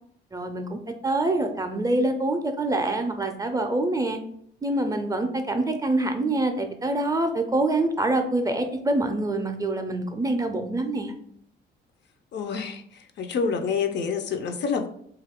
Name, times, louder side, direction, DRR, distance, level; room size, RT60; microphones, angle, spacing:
voice 1, 0.3-4.2 4.6-11.1, right 2 dB, 20° right, 5 dB, 0.4 m, -25 dB
voice 2, 12.3-14.9, left 5 dB, 60° left, 7 dB, 0.5 m, -28 dB
2.6 x 2.3 x 3.5 m, 0.67 s
cardioid pair, 90°, 20 cm